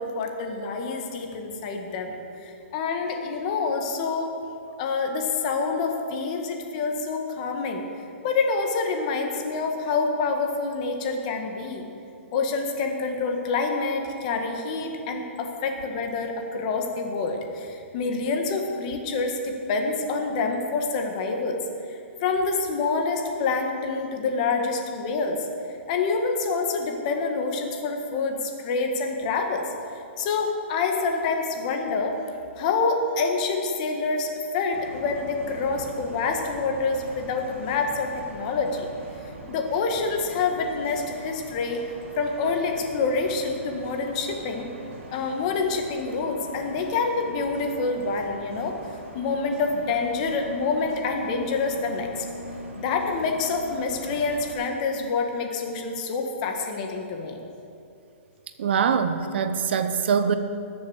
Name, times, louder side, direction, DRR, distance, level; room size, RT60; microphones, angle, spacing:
voice 1, 0.0-4.3 4.8-7.8 8.2-11.8 12.3-21.6 21.9-25.5 25.9-29.6 29.9-32.2 32.6-38.9 39.5-41.8 42.1-44.7 45.1-48.7 49.1-52.2 52.8-57.4, left 4 dB, 30° left, 3 dB, 1.6 m, -27 dB
Bus, 34.7-54.5, right 1 dB, 70° right, 3.6 m, -42 dB
voice 2, 58.6-60.4, right 6 dB, 55° right, 9 dB, 0.9 m, -23 dB
20.5 x 7.2 x 6.4 m, 2.5 s
hypercardioid pair, 165°, 7 cm